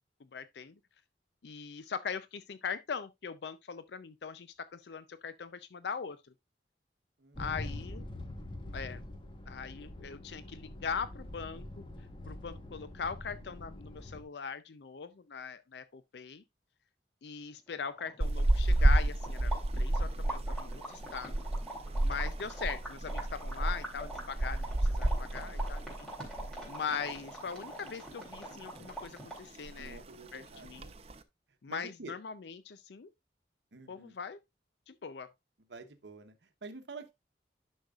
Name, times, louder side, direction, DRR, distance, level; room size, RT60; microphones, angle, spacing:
voice 1, 0.3-0.7 1.4-6.3 7.4-8.0 8.7-9.0 9.5-11.8 12.3-16.4 17.2-21.4 22.0-26.1 26.7-30.0 30.3-30.9 31.6-33.1 33.9-34.4 34.9-35.3, left 6 dB, 70° left, 0.5 m, -41 dB
voice 2, 7.2-7.5 25.4-25.7 29.8-31.0 31.7-32.1 33.7-34.2 35.7-37.1, right 3 dB, 85° right, 1.0 m, -48 dB
sound 1, 7.3-14.2, left 1 dB, 25° left, 1.2 m, -44 dB
sound 2, 17.5-17.6 17.8-29.5, right 1 dB, 5° left, 3.7 m, -44 dB
sound 3, 18.2-26.7 27.0-27.2 27.6-28.4 28.8-29.1 29.4-29.5 29.6-30.1 30.6-31.1, right 1 dB, 35° right, 0.6 m, -30 dB
10.5 x 6.4 x 2.4 m
head